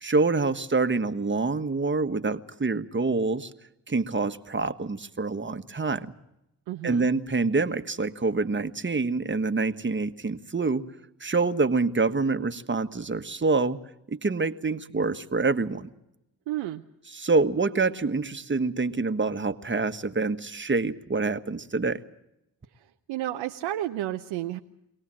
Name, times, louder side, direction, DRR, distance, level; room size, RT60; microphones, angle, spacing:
voice 1, 0.0-3.5 3.9-6.1 6.8-10.8 11.2-13.8 14.1-15.9 17.1-22.0, right 3 dB, 25° right, 10 dB, 1.4 m, -26 dB
voice 2, 6.7-7.1 16.5-16.8 22.7-24.6, right 14 dB, 85° right, 6 dB, 0.8 m, -32 dB
23.5 x 18.0 x 7.6 m, 0.86 s
hypercardioid pair, 40°, 43 cm